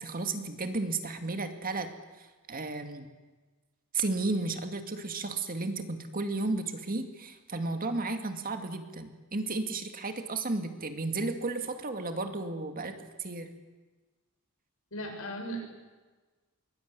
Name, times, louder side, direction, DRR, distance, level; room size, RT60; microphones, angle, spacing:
voice 1, 0.0-1.9 2.2-3.1 3.9-13.5, right 3 dB, 40° right, 6 dB, 2.2 m, -33 dB
voice 2, 14.9-15.6, equal, 70° left, 2 dB, 7.5 m, -36 dB
23.0 x 20.0 x 9.7 m, 1.3 s
head